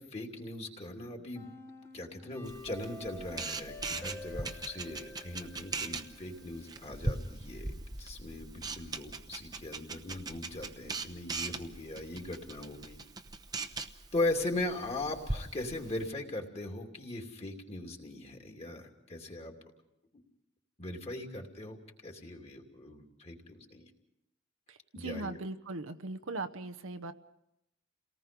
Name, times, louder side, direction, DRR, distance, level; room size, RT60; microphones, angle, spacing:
voice 1, 0.0-1.5 1.9-7.7 8.0-13.0 14.1-19.5 20.1-20.2 20.8-23.9 24.9-25.3, left 2 dB, 30° left, 2 dB, 2.9 m, -39 dB
sound 1, 1.3-6.4, left 1 dB, 10° left, 1.1 m, -49 dB
Camera, 2.4-16.1, right 3 dB, 20° right, 0.9 m, -40 dB
voice 2, 24.7-27.1, right 2 dB, 70° right, 9 dB, 1.0 m, -39 dB
29.0 x 19.0 x 5.3 m, 0.84 s
head